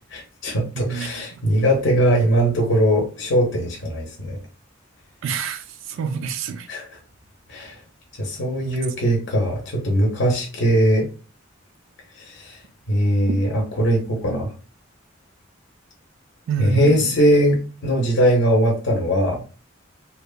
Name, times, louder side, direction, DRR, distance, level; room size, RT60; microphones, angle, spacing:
voice 1, 0.1-4.4 6.7-7.0 7.5-7.8 8.2-11.1 12.2-12.6 12.9-14.5 16.6-19.4, equal, 65° left, 0.6 m, -20 dB
voice 2, 0.7-1.5 5.2-6.7 13.3-13.4 16.5-17.3, right 6 dB, 75° right, 0.4 m, -28 dB
2.8 x 2.1 x 2.3 m
head